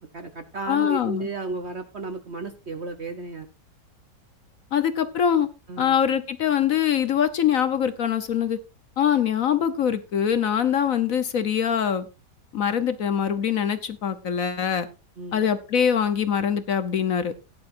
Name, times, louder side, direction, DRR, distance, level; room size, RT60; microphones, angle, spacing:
voice 1, 0.1-3.5 5.7-6.0 15.2-15.5, right 3 dB, 50° right, 8 dB, 0.9 m, -34 dB
voice 2, 0.7-1.3 4.7-5.5 5.8-8.6 9.0-12.1 12.5-14.9 15.3-17.3, left 8 dB, 55° left, 11 dB, 1.1 m, -23 dB
16.5 x 10.5 x 2.6 m, 0.29 s
omnidirectional pair, 1.9 m